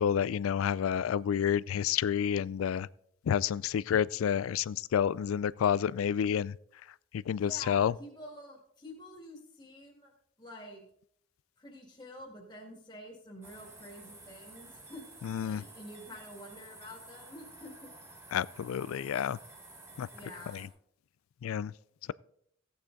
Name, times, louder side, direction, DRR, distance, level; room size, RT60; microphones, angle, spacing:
voice 1, 0.0-2.9 3.2-6.6 7.1-7.9 15.2-15.6 18.3-19.4 20.0-20.1 20.5-20.7 21.4-21.7, left 8 dB, 90° left, 0.3 m, -29 dB
voice 2, 7.3-10.1 10.4-10.8 11.6-15.0 15.4-17.9 20.1-20.7, left 1 dB, 20° left, 2.1 m, -48 dB
sound 1, 13.4-20.7, right 2 dB, 15° right, 2.1 m, -52 dB
15.5 x 8.8 x 3.9 m
head